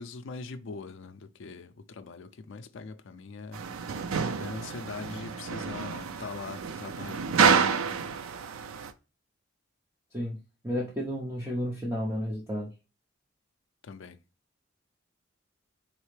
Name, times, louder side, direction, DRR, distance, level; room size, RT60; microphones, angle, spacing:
voice 1, 0.0-3.6 4.4-7.9 13.8-14.2, left 4 dB, 65° left, 0.4 m, -42 dB
sound 1, 3.5-8.9, right 6 dB, 80° right, 0.5 m, -28 dB
voice 2, 10.6-12.7, equal, 10° right, 0.7 m, -32 dB
4.1 x 3.1 x 3.2 m
head